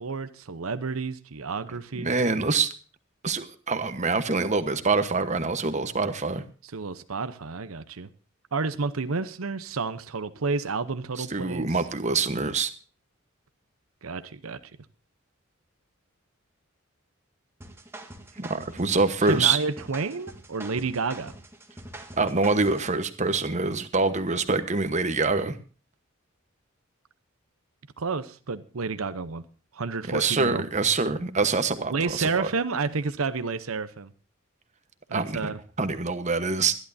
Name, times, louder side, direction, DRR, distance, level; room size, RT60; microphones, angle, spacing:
voice 1, 0.0-2.1 6.7-8.1 8.5-11.8 14.0-14.6 19.3-21.3 28.0-29.4 29.7-30.6 31.9-34.1 35.1-35.6, right 4 dB, 85° right, 12 dB, 0.8 m, -30 dB
voice 2, 1.9-2.7 3.2-6.4 11.2-12.7 18.4-19.6 22.2-25.6 30.1-32.5 35.1-36.7, right 4 dB, 35° right, 10 dB, 1.1 m, -25 dB
sound 1, 17.6-22.9, right 1 dB, 10° right, 1.5 m, -44 dB
23.5 x 11.0 x 2.7 m, 0.37 s
head